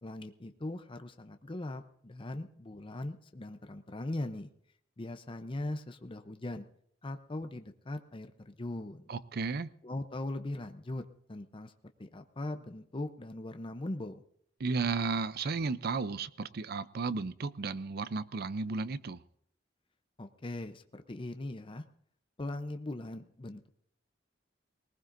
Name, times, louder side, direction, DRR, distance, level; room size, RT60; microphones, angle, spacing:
voice 1, 0.0-4.5 5.0-6.7 7.0-9.0 9.8-11.7 12.0-14.2 20.2-21.9 22.4-23.7, left 1 dB, 30° left, 0.6 m, -40 dB
voice 2, 9.1-9.7 14.6-19.2, right 4 dB, 55° right, 0.5 m, -34 dB
20.0 x 19.0 x 2.6 m
head